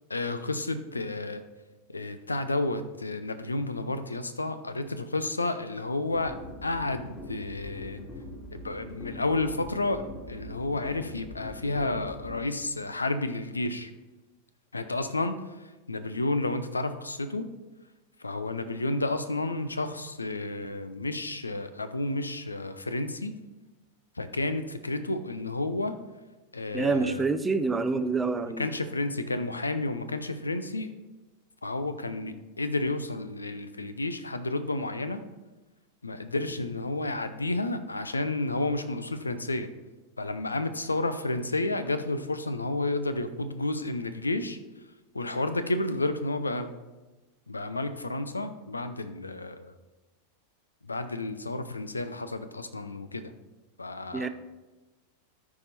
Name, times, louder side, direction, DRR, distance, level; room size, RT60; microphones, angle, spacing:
voice 1, 0.1-1.4 1.9-6.4 6.6-8.0 8.5-13.9 14.7-17.5 18.2-23.3 24.2-25.9 26.5-27.2 27.9-28.0 28.6-30.9 31.6-35.2 36.0-39.7 40.2-44.6 45.1-46.7 47.5-49.7 50.9-53.3 53.8-54.3, left 2 dB, 80° left, 11 dB, 0.6 m, -31 dB
sound 1, 6.1-12.4, left 1 dB, 25° left, 2.5 m, -43 dB
voice 2, 26.7-28.7 54.1-54.3, right 4 dB, 15° right, 10 dB, 0.5 m, -27 dB
13.0 x 4.9 x 4.1 m, 1.1 s
figure-of-eight pair, 90°, 0 cm